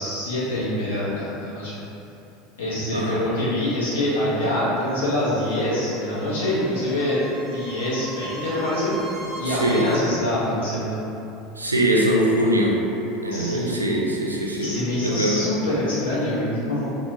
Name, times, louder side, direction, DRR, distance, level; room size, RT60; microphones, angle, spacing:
voice 1, 0.0-1.8 2.6-7.2 7.5-8.9 9.4-11.0 13.3-13.8 14.6-17.0, left 1 dB, 75° left, -8 dB, 0.7 m, -25 dB
voice 2, 2.9-3.3 9.4-9.9 11.6-12.8 13.2-14.8 15.0-15.5, right 1 dB, 85° right, -2 dB, 0.3 m, -22 dB
sound 1, 3.9-9.9, right 2 dB, 20° left, 0.7 m, -38 dB
2.8 x 2.1 x 2.6 m, 2.8 s
figure-of-eight pair, 75°, 0 cm